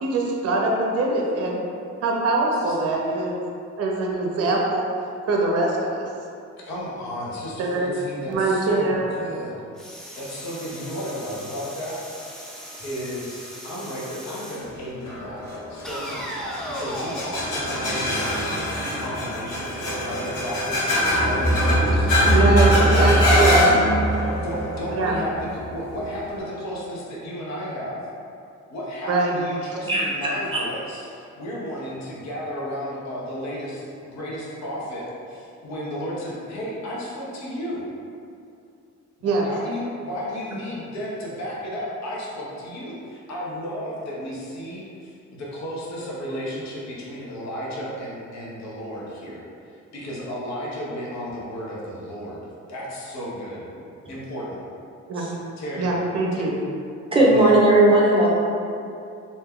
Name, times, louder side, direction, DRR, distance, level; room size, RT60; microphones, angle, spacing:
voice 1, 0.0-1.6 2.0-3.4 3.8-4.8 5.3-6.0 7.6-7.9 8.3-9.1 22.3-23.7 24.9-25.1 29.1-29.3 39.2-39.4 55.1-55.3 55.8-56.5, right 2 dB, 55° right, -1 dB, 0.6 m, -23 dB
voice 2, 6.6-9.6 10.2-12.0 12.8-15.4 15.7-22.2 22.7-23.6 24.4-28.0 28.7-37.8 39.2-49.4 49.9-52.4 52.7-53.6 54.1-54.6 55.6-55.9 56.3-56.5 57.1-57.5, equal, 65° left, -5 dB, 0.8 m, -33 dB
sound 1, 9.8-14.7 15.8-18.8, equal, ahead, 0.4 m, -37 dB
sound 2, 15.1-26.4, equal, 85° left, 1.1 m, -22 dB
voice 3, 57.1-58.3, right 1 dB, 20° right, -5 dB, 0.8 m, -16 dB
2.7 x 2.2 x 3.5 m, 2.5 s
cardioid pair, 90°, 30 cm